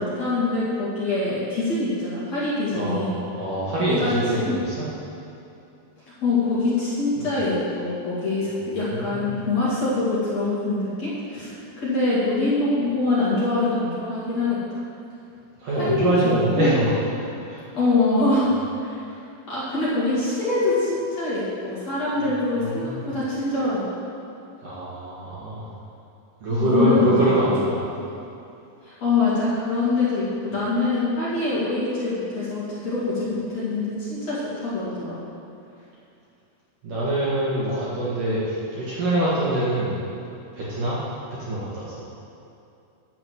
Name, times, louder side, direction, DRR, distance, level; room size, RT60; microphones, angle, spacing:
voice 1, 0.0-3.2 3.9-4.1 4.4-4.5 6.2-14.8 15.8-16.1 16.5-16.8 17.7-18.5 18.8-19.0 19.5-23.8 26.5-27.5 28.8-35.2, left 3 dB, 40° left, -9 dB, 3.0 m, -24 dB
voice 2, 2.7-4.8 7.2-7.3 8.7-9.4 15.6-16.9 17.5-17.7 19.0-19.2 22.8-23.1 24.6-25.7 26.4-27.9 36.8-40.0 40.5-41.0 41.4-42.1, right 1 dB, 55° right, -8 dB, 2.8 m, -24 dB
11.0 x 7.6 x 7.9 m, 2.7 s
omnidirectional pair, 5.6 m